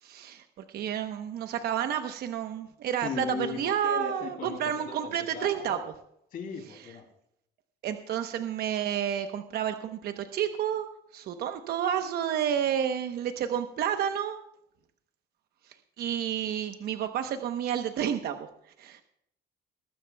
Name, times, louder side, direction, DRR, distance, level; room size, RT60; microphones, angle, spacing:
voice 1, 0.0-5.8 7.8-10.9 11.1-14.4 15.7-18.5 18.8-19.0, right 9 dB, 65° right, 7 dB, 1.0 m, -30 dB
voice 2, 3.0-5.9 6.3-7.1, left 5 dB, 55° left, 5 dB, 2.9 m, -38 dB
21.5 x 12.5 x 2.3 m, 0.74 s
cardioid pair, 120°, 18 cm